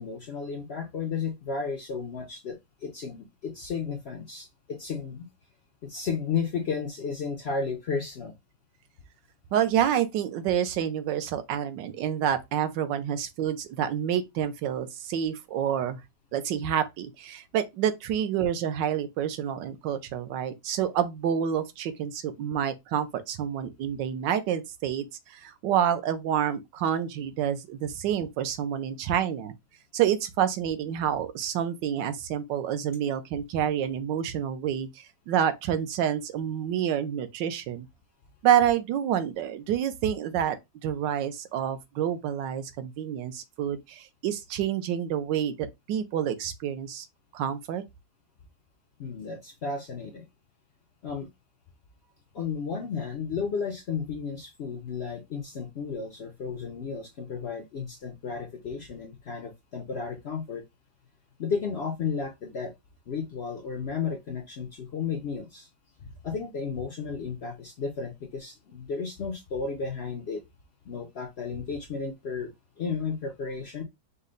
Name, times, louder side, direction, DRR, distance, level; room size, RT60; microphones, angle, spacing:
voice 1, 0.0-5.3 5.8-8.3 49.0-50.2 51.0-51.3 52.3-60.6 61.4-62.7 63.1-65.7 66.0-70.4 70.8-72.5 72.8-73.8, left 5 dB, 80° left, 0.5 m, -33 dB
voice 2, 9.5-16.0 16.3-29.5 29.9-37.9 38.4-40.6 40.8-45.6 45.9-47.1 47.3-47.8, right 9 dB, 80° right, 1.3 m, -28 dB
5.3 x 2.0 x 3.8 m
omnidirectional pair, 1.9 m